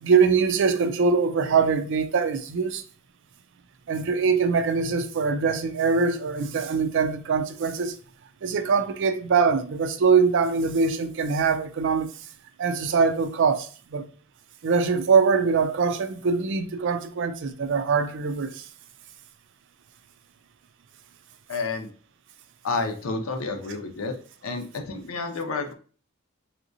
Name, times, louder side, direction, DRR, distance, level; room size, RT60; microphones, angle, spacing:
voice 1, 0.0-2.8 3.9-7.9 8.4-12.1 12.6-14.0 14.6-18.6, right 5 dB, 60° right, 0.4 m, -23 dB
voice 2, 21.5-21.9 22.6-24.2 24.4-25.7, left 3 dB, 80° left, 0.6 m, -30 dB
3.4 x 2.8 x 2.6 m
head